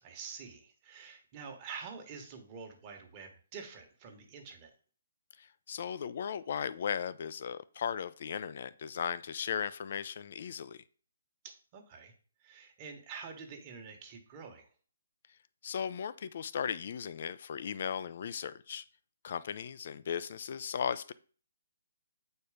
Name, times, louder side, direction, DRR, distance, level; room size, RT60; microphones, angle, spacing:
voice 1, 0.0-4.7 11.4-12.1 12.4-14.7, right 6 dB, 20° right, 1.4 m, -47 dB
voice 2, 5.4-10.8 15.6-18.8 19.2-21.1, left 7 dB, 45° left, 0.5 m, -37 dB
8.2 x 4.5 x 5.0 m
hypercardioid pair, 170°, 0 cm